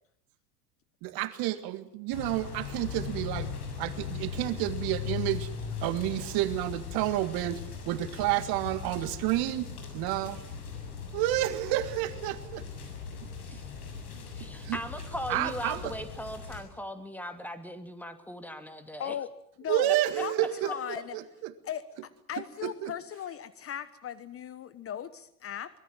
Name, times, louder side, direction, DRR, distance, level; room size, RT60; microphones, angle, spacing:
voice 1, 1.0-3.5 3.8-5.5 5.8-9.7 9.9-10.4 11.1-12.7 14.6-14.8 15.3-15.9 19.7-21.5 22.6-22.9, right 15 dB, 50° right, 12 dB, 1.9 m, -30 dB
sound 1, 2.1-16.6, left 6 dB, 70° left, 7.3 m, -39 dB
voice 2, 14.4-19.2 19.9-20.2, equal, 5° left, 9 dB, 2.6 m, -39 dB
voice 3, 19.6-21.2 21.6-25.8, left 9 dB, 30° left, 15 dB, 1.1 m, -38 dB
24.5 x 20.5 x 7.6 m, 0.69 s
hypercardioid pair, 85°, 47 cm